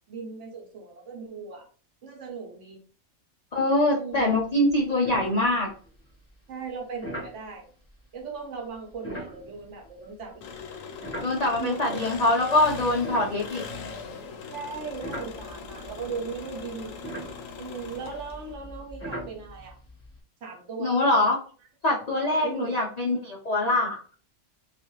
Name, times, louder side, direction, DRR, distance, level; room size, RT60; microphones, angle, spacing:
voice 1, 0.1-1.7 2.0-2.8 3.9-4.4 5.2-5.3 6.5-7.7 8.1-10.5 11.1-11.2 11.6-12.1 14.5-16.9 17.6-19.8 20.4-21.0 22.4-22.8, right 5 dB, 60° right, 1 dB, 1.0 m, -37 dB
voice 2, 3.5-5.7 11.2-13.6 20.8-21.4 21.8-24.0, left 2 dB, 90° left, -3 dB, 0.3 m, -24 dB
sound 1, 4.2-4.4 4.7-4.8 5.0-5.9 7.0-7.4 8.9-11.8 12.4-14.2 14.7-20.2, right 1 dB, 15° left, 0.7 m, -40 dB
Engine, 10.4-18.5, left 5 dB, 70° left, 0.9 m, -40 dB
2.5 x 2.3 x 2.9 m, 0.41 s
omnidirectional pair, 1.5 m